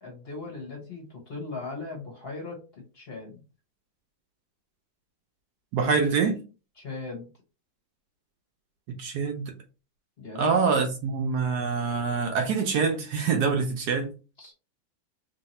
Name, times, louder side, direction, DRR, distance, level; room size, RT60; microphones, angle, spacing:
voice 1, 0.0-3.4 6.8-7.3 10.2-10.8 14.4-14.5, left 3 dB, 40° left, 1.0 m, -39 dB
voice 2, 5.7-6.4 9.0-9.5 10.4-14.1, right 5 dB, 70° right, 1.0 m, -25 dB
3.1 x 2.7 x 4.1 m
omnidirectional pair, 2.1 m